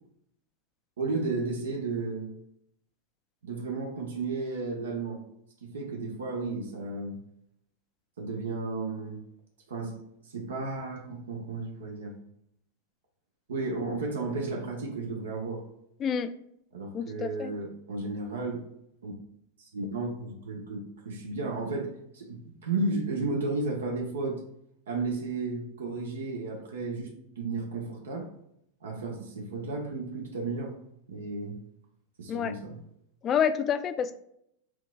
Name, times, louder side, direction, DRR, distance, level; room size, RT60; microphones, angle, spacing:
voice 1, 1.0-2.3 3.4-5.2 5.6-7.2 8.2-9.2 9.7-12.2 13.5-15.6 16.7-18.7 19.0-19.1 19.6-24.4 24.9-28.3 28.8-30.8 31.1-31.6 32.2-32.8, right 3 dB, 80° right, 1 dB, 0.7 m, -33 dB
voice 2, 16.0-16.3 16.9-17.5 32.3-32.5 33.2-34.1, left 7 dB, 30° left, 11 dB, 0.3 m, -28 dB
4.5 x 2.4 x 2.2 m, 0.74 s
hypercardioid pair, 105°, 0 cm